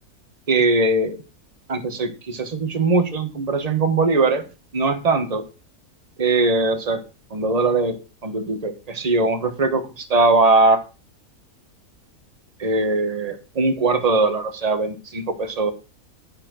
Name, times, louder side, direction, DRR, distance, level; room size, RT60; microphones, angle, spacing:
voice 1, 0.5-1.2 1.7-4.5 4.7-5.4 6.2-7.0 7.3-10.8 12.6-15.7, right 3 dB, 30° right, 8 dB, 1.2 m, -20 dB
10.0 x 4.4 x 6.1 m, 0.33 s
omnidirectional pair, 1.5 m